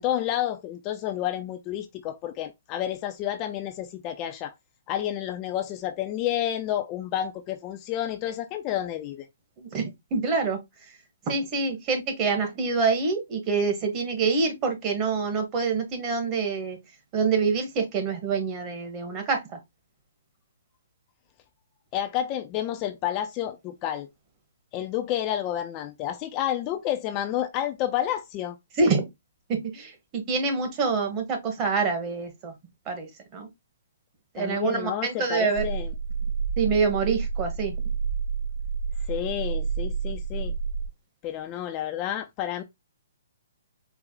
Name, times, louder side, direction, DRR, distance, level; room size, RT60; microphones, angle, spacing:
voice 1, 0.0-4.5 4.9-9.3 21.9-24.1 24.7-28.6 34.4-35.9 39.1-40.5 41.2-42.6, left 11 dB, 25° left, 0.4 m, -30 dB
voice 2, 9.6-10.6 11.3-16.8 17.1-19.4 28.8-29.0 29.5-32.5 32.9-33.5 34.3-35.6 36.6-37.7, right 4 dB, 25° right, 1.0 m, -26 dB
sound 1, 35.5-40.9, right 5 dB, 55° right, 2.0 m, -29 dB
4.5 x 2.0 x 3.5 m
hypercardioid pair, 155°, 0 cm